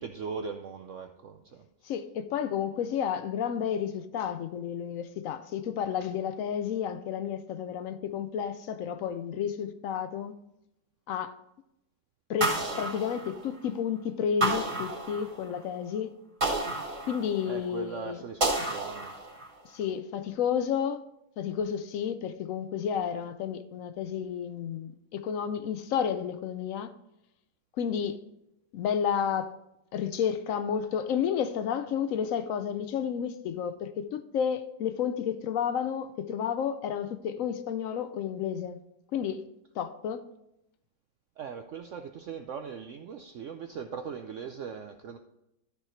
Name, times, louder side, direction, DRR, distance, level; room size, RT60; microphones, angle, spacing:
voice 1, 0.0-1.7 17.5-19.1 41.4-45.2, right 6 dB, 80° right, 0.6 m, -39 dB
voice 2, 1.8-10.3 11.1-11.4 12.3-16.2 17.1-18.2 19.7-21.0 21.4-26.9 27.8-28.2 28.7-29.6 29.9-38.8 39.1-39.4 39.8-40.2, left 8 dB, 75° left, 0.7 m, -31 dB
sound 1, 12.4-13.8 14.4-15.6 16.4-17.6 18.4-19.6, right 2 dB, 40° right, 2.4 m, -31 dB
13.0 x 4.6 x 4.4 m
omnidirectional pair, 1.9 m